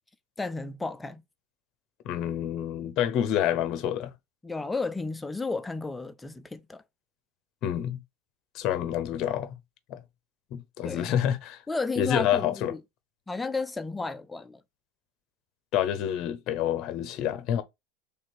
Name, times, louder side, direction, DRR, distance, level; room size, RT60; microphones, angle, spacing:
voice 1, 0.4-1.2 4.4-6.8 10.8-11.2 11.7-12.8 13.3-14.6, left 3 dB, 10° left, 0.5 m, -33 dB
voice 2, 2.0-4.1 7.6-8.0 8.5-9.6 9.9-10.0 10.5-11.6 12.0-12.7 15.7-17.6, left 10 dB, 50° left, 0.7 m, -28 dB
3.4 x 2.9 x 4.5 m
supercardioid pair, 110°, 0 cm